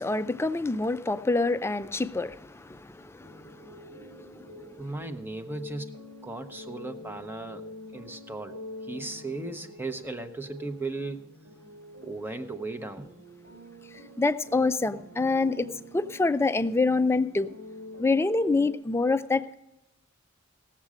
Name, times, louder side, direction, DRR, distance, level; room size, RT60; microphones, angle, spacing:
voice 1, 0.0-2.4 2.7-2.8 3.2-3.3 14.2-15.7 15.9-17.5 18.0-19.5, left 3 dB, 15° left, 0.4 m, -25 dB
sound 1, 3.2-18.7, left 1 dB, 60° right, 2.2 m, -47 dB
voice 2, 4.8-5.9 6.2-7.6 7.9-8.5 8.9-11.3 12.0-13.1, right 2 dB, 10° right, 0.8 m, -36 dB
18.0 x 7.4 x 4.9 m
head